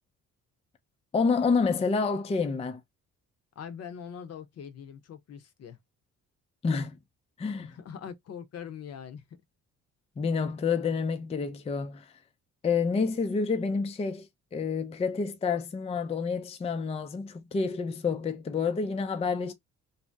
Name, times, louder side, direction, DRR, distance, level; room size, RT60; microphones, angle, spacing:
voice 1, 1.1-2.8 6.6-7.0 7.4-7.7 10.2-12.1 12.6-19.5, left 5 dB, 20° left, 0.4 m, -28 dB
voice 2, 3.6-5.8 7.6-9.2, left 7 dB, 55° left, 0.7 m, -42 dB
2.7 x 2.0 x 3.3 m
cardioid pair, 90°, 30 cm